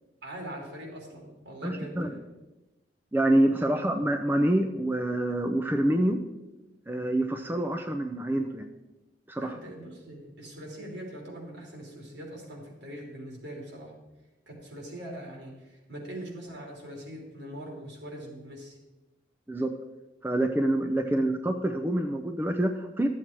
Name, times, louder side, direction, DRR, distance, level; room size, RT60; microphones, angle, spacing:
voice 1, 0.2-2.2 3.6-3.7 9.4-13.9 14.5-18.8 21.0-21.2, right 1 dB, 70° right, -1 dB, 3.2 m, -42 dB
voice 2, 1.6-2.1 3.1-6.2 6.9-8.7 9.3-9.6 19.5-19.7 20.2-23.1, right 1 dB, 10° right, 4 dB, 0.5 m, -26 dB
12.5 x 7.4 x 4.5 m, 1.1 s
head